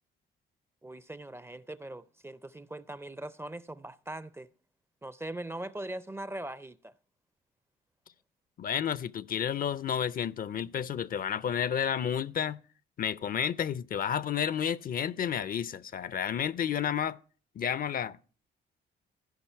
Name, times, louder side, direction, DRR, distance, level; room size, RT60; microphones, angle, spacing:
voice 1, 0.8-4.5 5.0-6.9, right 1 dB, 10° right, 0.4 m, -41 dB
voice 2, 8.6-12.6 13.0-17.2 17.6-18.2, left 8 dB, 45° left, 0.4 m, -31 dB
15.5 x 5.3 x 4.4 m
cardioid pair, 90°, 20 cm